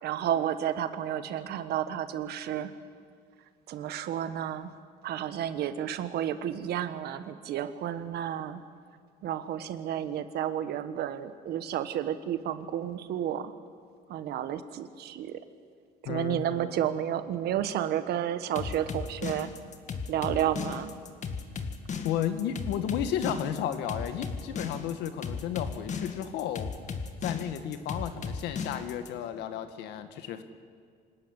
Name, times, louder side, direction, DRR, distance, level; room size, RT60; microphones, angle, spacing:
voice 1, 0.0-2.7 3.7-4.7 5.0-8.6 9.2-13.5 14.1-15.4 16.0-19.5 20.1-20.9, right 10 dB, 70° right, 11 dB, 1.4 m, -31 dB
voice 2, 16.1-16.4 22.0-26.7 27.2-30.4, left 9 dB, 90° left, 9 dB, 1.8 m, -33 dB
sound 1, 18.6-29.1, left 5 dB, 45° left, 2.0 m, -35 dB
25.5 x 13.5 x 10.0 m, 2.1 s
cardioid pair, 110°, 17 cm